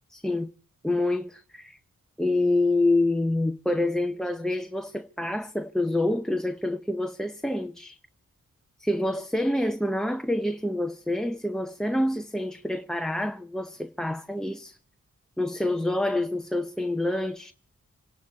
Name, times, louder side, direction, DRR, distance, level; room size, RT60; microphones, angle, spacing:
voice 1, 0.1-0.5 0.8-1.8 2.2-8.0 8.8-14.8 15.4-17.5, left 1 dB, ahead, 0.7 m, -27 dB
26.5 x 11.0 x 4.9 m
wide cardioid pair, 100°, 31 cm